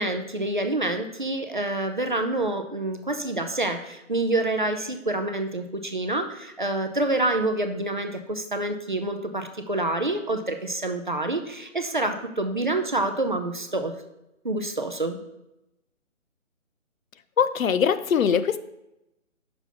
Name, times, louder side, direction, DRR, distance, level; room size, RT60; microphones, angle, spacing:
voice 1, 0.0-13.9 14.4-15.2, right 2 dB, 40° right, 6 dB, 0.4 m, -27 dB
voice 2, 17.4-18.6, left 7 dB, 85° left, 13 dB, 0.6 m, -22 dB
6.0 x 3.9 x 5.5 m, 0.89 s
hypercardioid pair, 165°, 40 cm